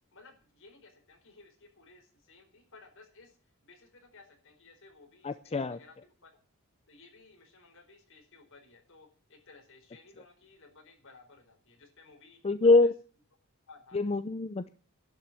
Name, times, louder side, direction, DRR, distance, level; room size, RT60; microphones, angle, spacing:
voice 1, 0.1-6.4 6.9-12.9 13.7-14.1, left 3 dB, 65° left, 4 dB, 4.4 m, -57 dB
voice 2, 5.2-5.8 12.4-12.9 13.9-14.7, left 3 dB, 30° left, 12 dB, 0.5 m, -24 dB
11.5 x 7.5 x 9.7 m, 0.41 s
head